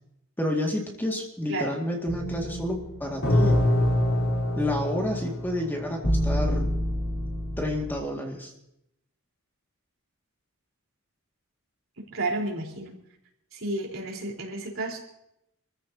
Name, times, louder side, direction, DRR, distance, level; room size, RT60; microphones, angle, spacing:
voice 1, 0.4-3.6 4.6-6.7 7.6-8.5, left 1 dB, 10° left, 0 dB, 2.0 m, -30 dB
sound 1, 2.1-7.9, equal, 65° left, 3.5 m, -26 dB
voice 2, 12.0-13.0 13.5-15.0, right 2 dB, 65° right, 0 dB, 4.1 m, -31 dB
26.5 x 14.5 x 2.8 m, 0.79 s
head